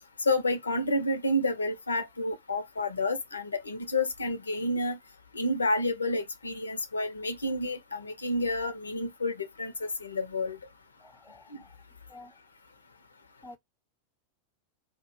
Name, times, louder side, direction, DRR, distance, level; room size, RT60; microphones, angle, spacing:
voice 1, 0.2-5.0 5.3-10.6 11.5-11.6, left 1 dB, 75° left, 0.4 m, -30 dB
voice 2, 11.0-11.8 12.1-12.4 13.4-13.6, left 2 dB, 10° left, 0.4 m, -50 dB
2.1 x 2.0 x 3.0 m
figure-of-eight pair, 90°, 0 cm